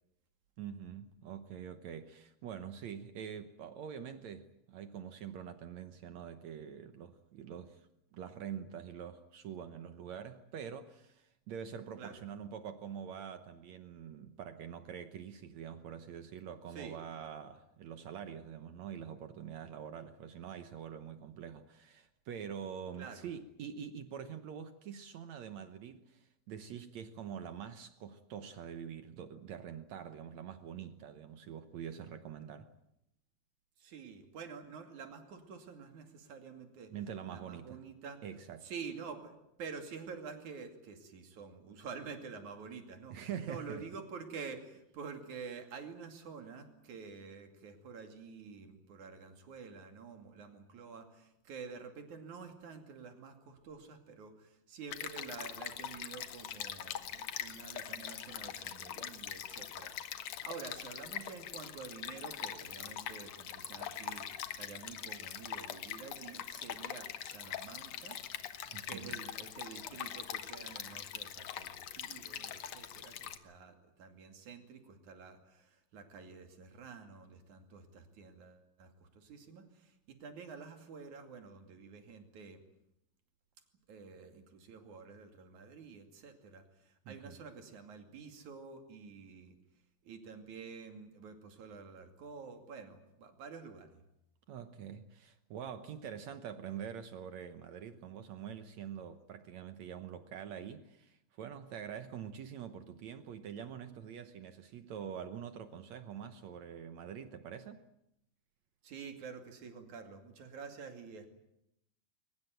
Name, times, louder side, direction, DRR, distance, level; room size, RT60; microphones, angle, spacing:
voice 1, 0.6-32.7 36.9-37.8 38.2-38.7 43.1-43.8 68.7-69.2 87.0-87.3 94.5-107.8, right 8 dB, 70° right, 1.7 m, -45 dB
voice 2, 23.0-23.3 33.8-36.9 37.3-38.2 38.6-68.2 68.9-82.6 83.9-89.6 90.0-94.0 108.8-111.3, right 5 dB, 50° right, 3.6 m, -49 dB
Stream, 54.9-73.4, left 10 dB, 65° left, 1.7 m, -43 dB
22.5 x 20.0 x 9.2 m
omnidirectional pair, 4.5 m